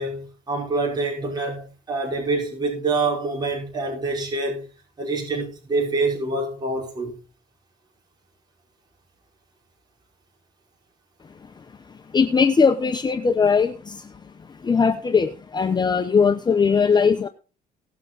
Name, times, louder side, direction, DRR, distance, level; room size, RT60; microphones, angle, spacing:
voice 1, 0.0-4.7 5.0-7.1, right 3 dB, 25° right, 5.6 m, -26 dB
voice 2, 12.1-13.7 14.7-17.3, left 5 dB, 25° left, 0.9 m, -19 dB
18.5 x 7.6 x 4.0 m
cardioid pair, 110°, 17 cm